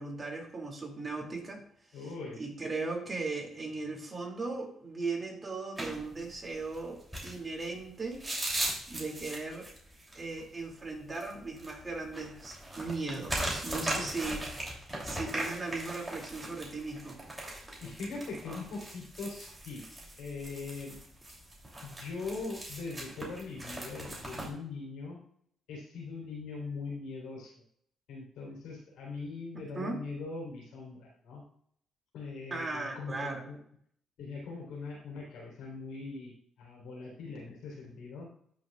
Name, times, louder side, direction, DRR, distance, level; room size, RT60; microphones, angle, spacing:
voice 1, 0.0-8.2 8.9-9.7 10.1-14.7 15.0-17.2 29.5-30.0 32.5-33.4, right 3 dB, 25° right, 0 dB, 2.5 m, -38 dB
voice 2, 1.9-2.4 13.9-14.1 14.9-15.2 17.8-19.8 20.2-21.0 21.8-25.2 25.7-27.5 28.1-31.4 32.1-33.6 34.2-36.3 36.6-38.3, left 4 dB, 85° left, -2 dB, 3.7 m, -41 dB
sound 1, 5.8-24.5, right 1 dB, 10° right, 3.1 m, -39 dB
12.0 x 6.1 x 2.4 m, 0.65 s
cardioid pair, 90°, 0 cm